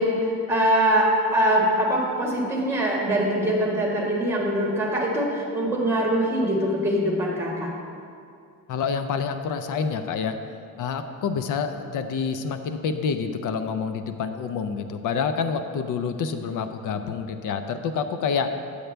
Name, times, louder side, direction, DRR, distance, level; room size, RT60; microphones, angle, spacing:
voice 1, 0.0-7.7, equal, 5° right, -3 dB, 1.7 m, -23 dB
voice 2, 8.7-10.4 10.8-18.5, left 6 dB, 65° left, 8 dB, 0.6 m, -27 dB
9.0 x 8.0 x 3.3 m, 2.4 s
cardioid pair, 135°, 35 cm